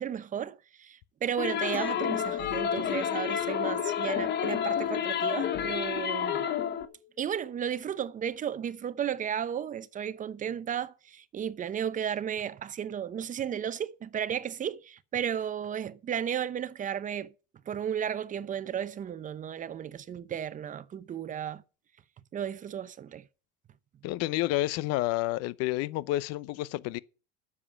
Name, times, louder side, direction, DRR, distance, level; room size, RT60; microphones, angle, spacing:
voice 1, 0.0-6.5 7.2-17.3 17.7-21.6 22.3-23.2, right 9 dB, 25° right, 0.8 m, -34 dB
sound 1, 1.4-6.8, left 8 dB, 35° left, 1.2 m, -30 dB
Chink clink, 1.7-7.2, left 8 dB, 5° right, 1.6 m, -43 dB
voice 2, 24.0-27.0, left 16 dB, 55° left, 0.7 m, -29 dB
9.9 x 7.3 x 7.3 m
supercardioid pair, 125°, 29 cm